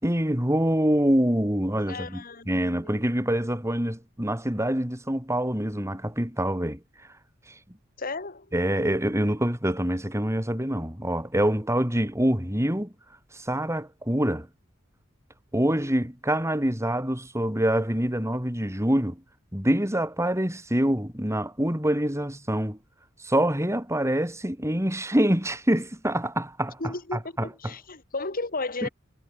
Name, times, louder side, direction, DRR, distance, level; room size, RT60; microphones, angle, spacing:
voice 1, 0.0-6.8 8.5-12.9 13.3-14.5 15.5-19.2 19.5-22.8 23.2-27.7 28.8-28.9, right 1 dB, 15° right, 5.3 m, -25 dB
voice 2, 1.9-3.0 8.0-8.5 26.8-28.9, left 3 dB, 45° left, 3.0 m, -34 dB
head